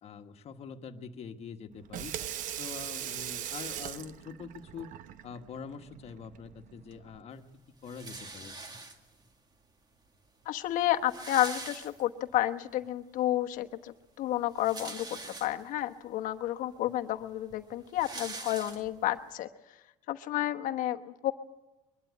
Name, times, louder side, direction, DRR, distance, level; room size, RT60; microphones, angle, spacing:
voice 1, 0.0-2.1 2.6-4.9 5.2-7.5 7.8-8.5, left 6 dB, 45° left, 6 dB, 1.5 m, -44 dB
Water tap faucet / Sink (filling or washing), 1.7-7.2, right 11 dB, 60° right, 0.8 m, -40 dB
sound 1, 7.8-9.3 10.1-10.2 10.4-10.5 10.8-12.4 12.8-12.9 14.3-15.8 16.5-16.6 16.8-19.2, right 3 dB, 30° right, 1.9 m, -44 dB
voice 2, 10.5-15.1 15.4-19.5 20.1-21.3, left 13 dB, 65° left, 6 dB, 1.1 m, -31 dB
22.5 x 12.0 x 9.5 m, 1.1 s
cardioid pair, 110°, 15 cm